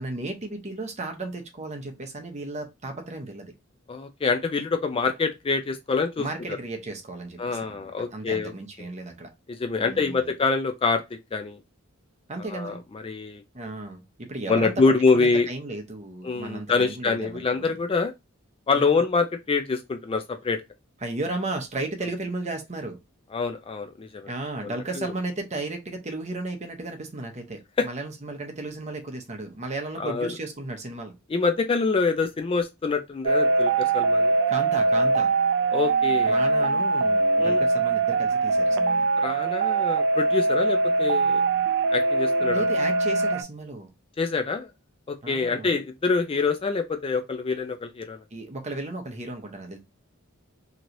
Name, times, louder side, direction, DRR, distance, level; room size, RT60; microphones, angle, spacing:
voice 1, 0.0-3.5 6.2-9.3 9.8-10.3 12.3-12.8 13.5-17.8 18.7-19.0 21.0-23.0 24.3-31.1 34.5-35.3 36.2-39.1 42.5-43.9 45.2-45.8 48.3-49.8, right 2 dB, 35° right, 0.7 m, -34 dB
voice 2, 3.9-6.3 7.4-8.5 8.8-8.9 9.5-11.6 12.5-13.4 14.5-15.5 16.2-18.1 18.7-20.6 23.3-24.3 24.6-25.1 27.8-27.9 30.0-30.3 31.3-34.3 35.7-36.4 37.4-37.6 39.2-41.4 41.9-42.7 44.2-44.7 45.1-48.2, left 4 dB, 25° left, 0.3 m, -25 dB
sound 1, 33.2-43.4, right 3 dB, 60° right, 0.3 m, -22 dB
3.1 x 2.9 x 2.5 m
head